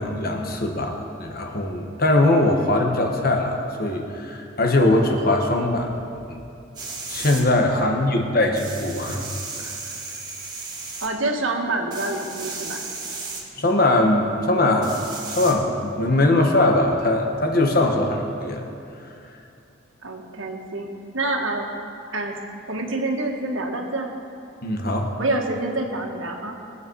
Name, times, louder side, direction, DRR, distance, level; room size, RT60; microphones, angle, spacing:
voice 1, 0.0-6.4 7.1-9.2 9.6-9.8 13.6-15.0 15.4-18.6 24.6-25.1, left 2 dB, 45° left, 2 dB, 1.5 m, -21 dB
sound 1, 6.7-7.4 8.6-11.1 11.9-13.4 14.8-15.5, right 3 dB, 20° right, 2.2 m, -34 dB
voice 2, 7.7-8.4 11.0-12.9 20.0-20.9 21.1-21.7 22.1-22.3 22.7-24.1 25.2-26.6, right 2 dB, 75° right, 1 dB, 1.8 m, -27 dB
22.5 x 8.5 x 4.8 m, 2.7 s
head